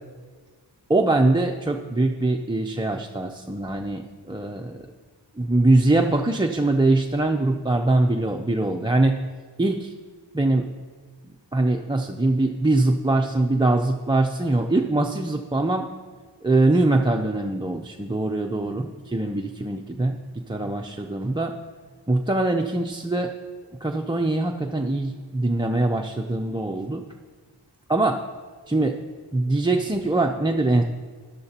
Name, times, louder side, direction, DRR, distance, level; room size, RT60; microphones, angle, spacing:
voice 1, 0.9-4.9 5.4-9.2 9.6-9.9 10.3-10.7 11.5-15.9 16.4-20.2 20.5-21.5 22.1-23.3 23.8-27.0 27.9-28.2 28.7-29.0 29.3-30.8, right 2 dB, 10° right, 2 dB, 0.5 m, -22 dB
12.5 x 12.0 x 2.9 m, 1.5 s
wide cardioid pair, 65°, 45 cm